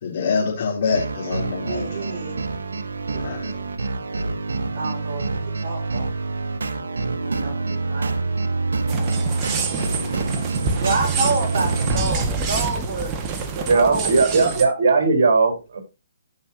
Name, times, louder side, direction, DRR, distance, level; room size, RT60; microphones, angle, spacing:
voice 1, 0.0-2.4 3.2-3.6, left 5 dB, 55° left, 3.6 m, -26 dB
sound 1, 0.9-12.0, right 3 dB, 80° right, 1.2 m, -26 dB
voice 2, 1.7-2.4 3.1-3.7 4.8-6.1 7.2-8.1 10.8-14.1, right 3 dB, 45° right, 5.1 m, -29 dB
sound 2, 8.9-14.7, right 4 dB, 25° right, 1.8 m, -27 dB
voice 3, 13.7-15.8, right 4 dB, 60° right, 4.2 m, -18 dB
15.5 x 5.9 x 2.9 m
hypercardioid pair, 140°, 0 cm